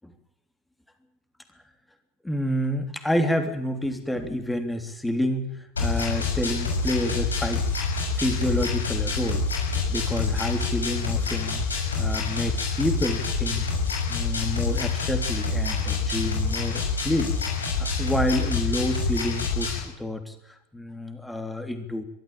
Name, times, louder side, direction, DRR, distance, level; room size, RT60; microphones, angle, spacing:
voice 1, 2.2-7.6 8.2-9.4 9.9-11.7 12.0-13.7 14.1-17.4 17.8-22.0, left 1 dB, 5° left, 7 dB, 3.4 m, -28 dB
sound 1, 5.8-19.8, left 4 dB, 85° left, 6.4 m, -27 dB
23.0 x 13.5 x 8.9 m, 0.85 s
hypercardioid pair, 85°, 0 cm